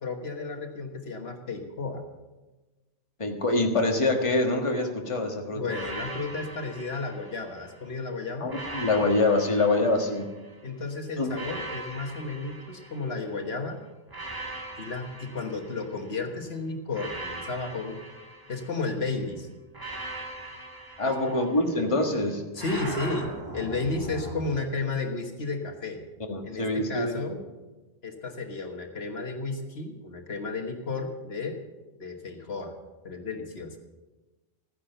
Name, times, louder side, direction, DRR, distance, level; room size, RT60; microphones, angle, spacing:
voice 1, 0.0-2.0 5.5-8.5 10.6-13.8 14.8-18.0 18.5-19.5 21.0-21.4 22.5-26.0 26.4-27.4 28.0-31.6 32.0-32.7 33.0-33.8, left 3 dB, 70° left, 4 dB, 1.6 m, -33 dB
voice 2, 3.2-5.6 8.4-10.3 11.2-11.3 21.0-22.4 26.3-27.2, left 2 dB, 30° left, 2 dB, 1.5 m, -25 dB
sound 1, 5.7-7.8 8.5-10.6 11.3-13.5 14.1-16.3 16.9-19.1 19.7-21.9 22.6-24.6, right 2 dB, 20° right, 1.7 m, -40 dB
14.5 x 10.0 x 6.7 m, 1.2 s
omnidirectional pair, 1.1 m